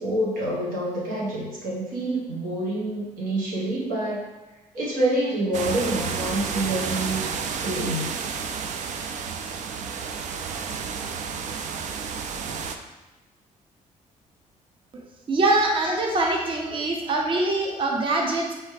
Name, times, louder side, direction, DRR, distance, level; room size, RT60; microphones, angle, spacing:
voice 1, 0.0-4.2 4.7-7.3 7.6-8.1, right 1 dB, 85° right, -6 dB, 1.5 m, -27 dB
sound 1, 5.5-12.8, right 6 dB, 60° right, 0.4 m, -31 dB
voice 2, 15.3-18.5, right 2 dB, 40° right, 0 dB, 0.8 m, -23 dB
4.4 x 3.2 x 3.3 m, 1.1 s
cardioid pair, 120°, 14 cm